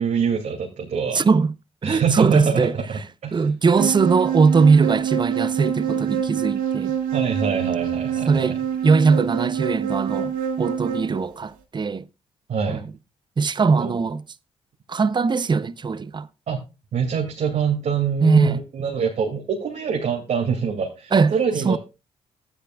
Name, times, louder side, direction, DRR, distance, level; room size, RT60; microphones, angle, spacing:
voice 1, 0.0-1.3 1.8-3.5 7.1-8.6 12.5-12.9 13.7-14.0 16.5-16.6 16.9-21.8, right 6 dB, 60° right, 2.5 m, -25 dB
voice 2, 1.1-1.5 1.8-2.8 3.3-6.9 8.3-8.6 8.8-12.1 12.7-12.9 13.4-14.2 14.9-16.3 18.2-18.6 21.1-21.3 21.6-21.8, right 4 dB, 35° right, 0.7 m, -20 dB
sound 1, 3.8-11.2, right 8 dB, 80° right, 1.6 m, -25 dB
13.0 x 9.8 x 2.4 m
supercardioid pair, 50°, 14 cm